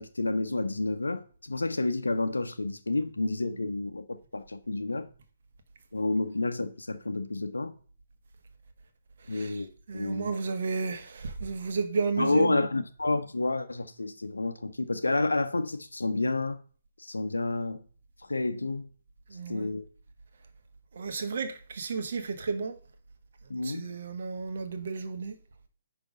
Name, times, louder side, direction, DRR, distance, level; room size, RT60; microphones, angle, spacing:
voice 1, 0.0-5.1 5.9-7.7 9.3-10.3 12.2-16.6 17.0-17.8 18.3-18.9 19.5-19.9 23.5-23.9, left 2 dB, 80° left, 0.8 m, -30 dB
voice 2, 9.9-12.7 19.3-19.7 20.9-22.8 23.6-25.3, right 4 dB, 55° right, 1.4 m, -32 dB
9.9 x 3.5 x 5.2 m
figure-of-eight pair, 130°, 0 cm